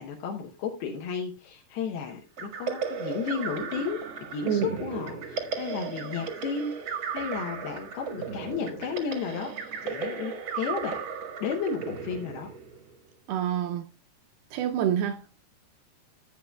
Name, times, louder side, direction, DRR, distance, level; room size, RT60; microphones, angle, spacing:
voice 1, 0.0-4.0 4.3-9.5 9.8-11.0 11.4-12.5, left 6 dB, 75° left, 2.8 m, -33 dB
sound 1, 2.4-13.0, right 6 dB, 60° right, 1.3 m, -35 dB
voice 2, 13.3-13.8 14.5-15.2, right 10 dB, 80° right, 2.3 m, -27 dB
12.5 x 8.8 x 2.3 m
omnidirectional pair, 4.7 m